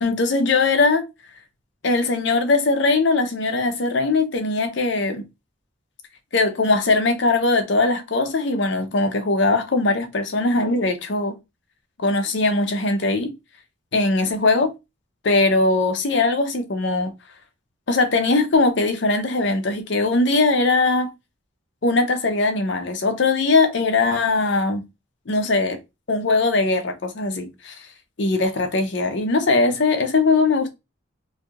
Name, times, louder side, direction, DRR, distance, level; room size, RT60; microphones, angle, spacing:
voice 1, 0.0-1.1 1.8-5.2 6.3-11.4 12.0-13.3 13.9-14.7 15.2-17.1 17.9-21.1 21.8-24.8 25.3-25.8 26.1-27.7 28.2-30.7, left 3 dB, 60° left, 0.6 m, -20 dB
3.3 x 2.6 x 2.3 m
head